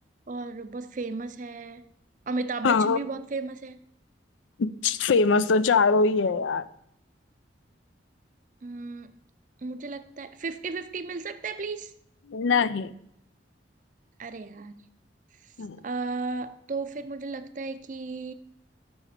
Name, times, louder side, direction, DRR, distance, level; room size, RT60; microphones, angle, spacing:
voice 1, 0.3-1.8 2.3-3.8 8.6-9.1 9.6-11.9 14.2-14.9 15.8-18.3, right 3 dB, 40° right, 0.5 m, -34 dB
voice 2, 2.6-3.0 4.6-6.7 12.3-12.9 15.6-15.8, left 4 dB, 80° left, 0.4 m, -22 dB
7.0 x 6.3 x 6.6 m
head